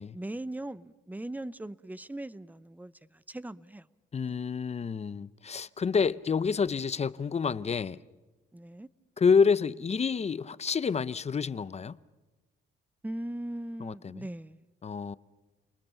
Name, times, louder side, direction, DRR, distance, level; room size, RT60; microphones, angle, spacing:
voice 1, 0.1-3.9 4.2-4.4 8.5-8.9 13.0-14.7, right 1 dB, 10° right, 0.7 m, -39 dB
voice 2, 4.1-8.0 9.2-12.0 13.8-14.3 14.8-15.2, left 5 dB, 35° left, 0.7 m, -28 dB
30.0 x 20.5 x 7.2 m
cardioid pair, 90°, 20 cm